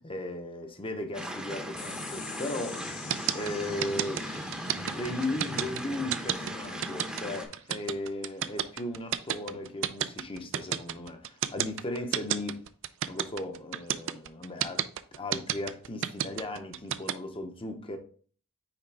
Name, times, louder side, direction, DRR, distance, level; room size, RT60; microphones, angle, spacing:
voice 1, 0.0-2.8 3.3-4.3 4.9-12.6 13.1-14.9 15.1-18.0, left 1 dB, 25° left, 0.8 m, -36 dB
sound 1, 1.1-7.4, equal, 5° right, 0.8 m, -38 dB
sound 2, 1.8-8.6, left 8 dB, 75° left, 1.0 m, -48 dB
sound 3, 3.1-17.1, right 10 dB, 60° right, 0.4 m, -30 dB
5.8 x 4.8 x 3.3 m
head